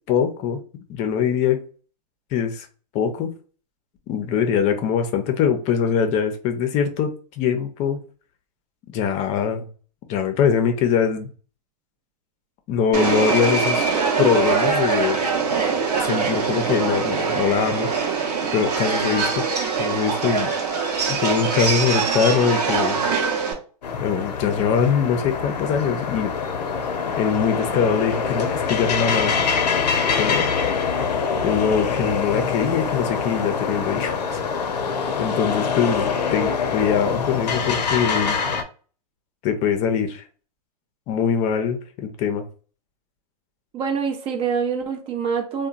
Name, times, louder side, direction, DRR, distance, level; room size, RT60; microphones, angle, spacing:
voice 1, 0.1-0.6 0.9-1.6 2.3-2.7 2.9-3.3 4.1-8.0 8.9-9.7 10.1-11.3 12.7-13.9 14.2-15.2 16.0-17.9 18.5-19.3 19.8-20.5 21.1-23.1 24.0-26.3 27.2-29.4 30.2-30.5 31.4-34.4 35.2-38.4 39.4-40.2 41.1-42.4, left 7 dB, 35° left, 0.5 m, -22 dB
Subway metro underground, 12.9-23.5, right 5 dB, 75° right, 0.8 m, -23 dB
sound 1, 23.8-38.6, left 6 dB, 85° left, 0.5 m, -24 dB
voice 2, 43.7-45.7, right 6 dB, 30° right, 0.4 m, -25 dB
2.8 x 2.1 x 2.4 m
hypercardioid pair, 120°, 21 cm